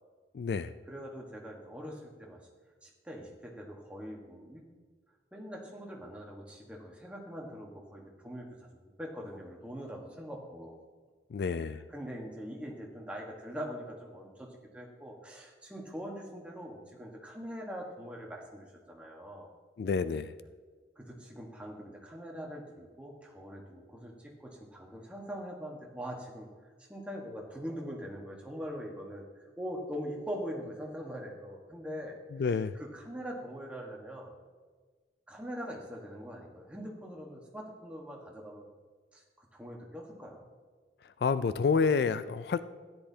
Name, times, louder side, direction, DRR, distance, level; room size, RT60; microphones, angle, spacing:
voice 1, 0.3-0.7 11.3-11.8 19.8-20.3 32.4-32.7 41.0-42.6, left 5 dB, 65° left, 13 dB, 0.3 m, -29 dB
voice 2, 0.9-2.4 2.8-4.6 5.3-8.5 9.0-10.7 11.9-19.5 21.0-26.5 26.8-32.2 32.7-34.3 35.3-38.7 39.1-40.5, equal, 5° right, -1 dB, 1.3 m, -42 dB
13.5 x 10.0 x 2.8 m, 1.5 s
head